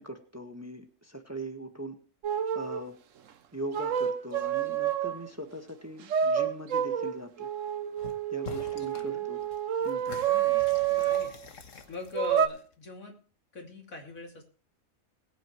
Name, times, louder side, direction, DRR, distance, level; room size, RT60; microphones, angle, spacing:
voice 1, 0.0-2.0 2.5-2.9 3.5-7.5 8.3-9.4 9.8-10.2, right 1 dB, 10° right, 5 dB, 1.3 m, -40 dB
sound 1, 2.2-2.8 3.7-5.3 6.1-11.4 12.1-12.5, right 9 dB, 70° right, 1.2 m, -28 dB
sound 2, 8.0-8.2 8.4-9.1 9.4-12.8, left 5 dB, 70° left, 1.7 m, -46 dB
voice 2, 8.9-9.3 10.2-11.4 11.9-13.2 13.5-14.4, left 4 dB, 85° left, 1 dB, 3.2 m, -42 dB
21.0 x 9.0 x 3.1 m, 0.40 s
omnidirectional pair, 1.4 m